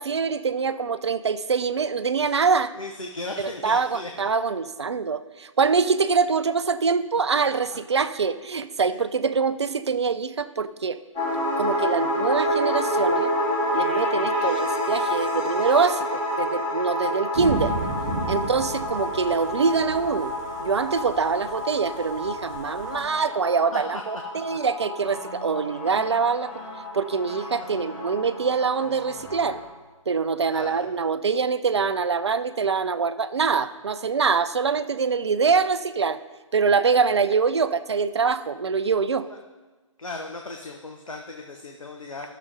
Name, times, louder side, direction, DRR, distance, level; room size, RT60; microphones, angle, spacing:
voice 1, 0.0-2.7 3.4-11.0 11.6-13.3 13.7-17.7 18.3-20.3 20.6-26.5 26.9-29.6 30.1-36.2 36.5-39.3, right 5 dB, 55° right, 13 dB, 0.6 m, -24 dB
voice 2, 2.7-4.3 8.8-9.1 23.2-23.3 23.7-24.0 30.5-30.9 39.2-39.4 40.0-42.3, left 2 dB, 75° left, 1 dB, 1.1 m, -37 dB
sound 1, 11.1-29.7, left 1 dB, 20° left, 3.6 m, -29 dB
Thunder / Rain, 17.3-23.1, right 1 dB, 35° right, 1.6 m, -34 dB
13.0 x 6.8 x 5.2 m, 1.2 s
figure-of-eight pair, 140°, 17 cm